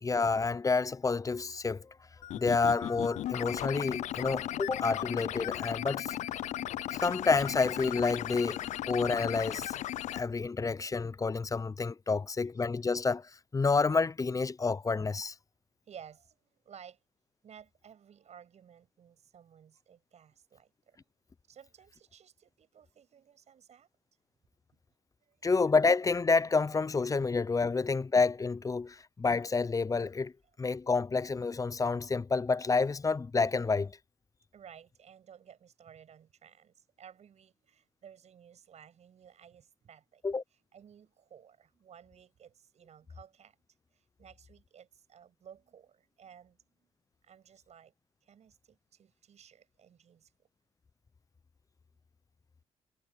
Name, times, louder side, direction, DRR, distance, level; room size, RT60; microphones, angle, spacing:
voice 1, 0.0-1.9 2.4-6.2 6.9-9.8 10.1-15.3 25.4-30.3 30.6-34.0 40.2-40.4, left 4 dB, 30° left, 0.5 m, -29 dB
sound 1, 2.2-10.2, left 13 dB, 80° left, 0.4 m, -36 dB
voice 2, 15.9-17.0 17.4-21.0 21.5-23.9 25.2-25.4 34.5-40.2 40.6-43.6 43.9-46.9 47.2-47.9 48.2-50.3, right 8 dB, 70° right, 7.2 m, -55 dB
cardioid pair, 70°, 12 cm